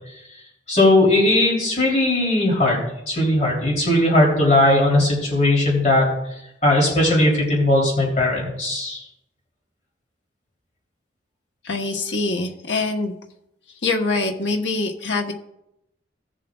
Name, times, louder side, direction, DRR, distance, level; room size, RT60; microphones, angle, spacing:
voice 1, 0.7-6.1 6.6-9.0, left 1 dB, 40° left, -3 dB, 3.3 m, -18 dB
voice 2, 11.6-13.1 13.8-15.3, left 3 dB, 80° left, 2 dB, 1.1 m, -24 dB
17.5 x 7.4 x 2.4 m, 0.85 s
head